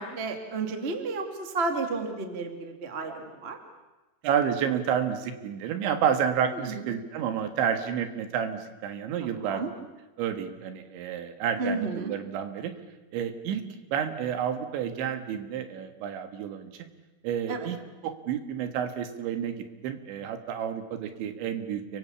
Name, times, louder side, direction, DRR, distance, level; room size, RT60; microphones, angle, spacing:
voice 1, 0.0-3.6 6.6-6.8 9.2-9.7 11.6-12.1 17.5-17.7, right 3 dB, 25° right, 5 dB, 1.4 m, -32 dB
voice 2, 4.2-9.6 10.2-12.7 13.1-13.6 13.9-16.7 17.2-17.8 18.0-22.0, right 8 dB, 70° right, 8 dB, 3.8 m, -30 dB
30.0 x 24.0 x 7.2 m, 1.1 s
omnidirectional pair, 5.6 m